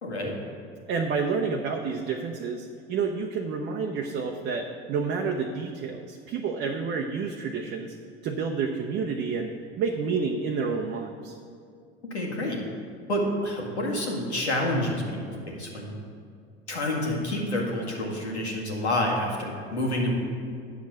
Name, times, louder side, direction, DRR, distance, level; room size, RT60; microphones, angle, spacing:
voice 1, 0.0-0.4 12.0-12.6 13.1-15.9 16.7-20.1, left 1 dB, 80° left, -1 dB, 2.0 m, -28 dB
voice 2, 0.9-8.0 8.2-11.4, right 5 dB, 30° right, 2 dB, 0.7 m, -29 dB
9.2 x 7.2 x 6.4 m, 2.4 s
figure-of-eight pair, 75°, 33 cm